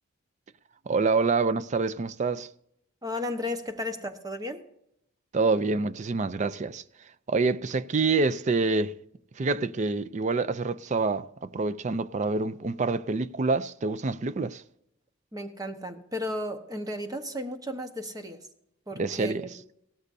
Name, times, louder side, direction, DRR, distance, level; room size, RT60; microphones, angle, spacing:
voice 1, 0.9-2.5 5.3-6.8 7.3-8.9 9.4-14.6 19.0-19.5, right 3 dB, 35° right, 0.4 m, -26 dB
voice 2, 3.0-4.6 15.3-18.4 18.9-19.5, left 1 dB, 20° right, 1.1 m, -34 dB
17.0 x 13.5 x 2.7 m
head